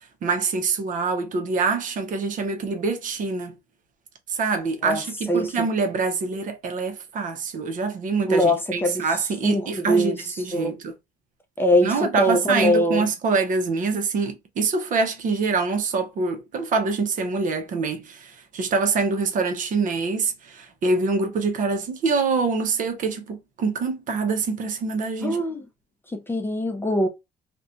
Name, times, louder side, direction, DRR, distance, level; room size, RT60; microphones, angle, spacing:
voice 1, 0.0-3.6 4.3-10.9 11.8-25.4, right 4 dB, 50° right, 0.6 m, -25 dB
voice 2, 5.3-5.7 8.3-9.0 9.4-10.2 10.5-10.7 11.6-13.1 25.2-25.6 26.1-27.1, equal, 15° left, 0.5 m, -22 dB
2.5 x 2.1 x 2.4 m
cardioid pair, 110°, 17 cm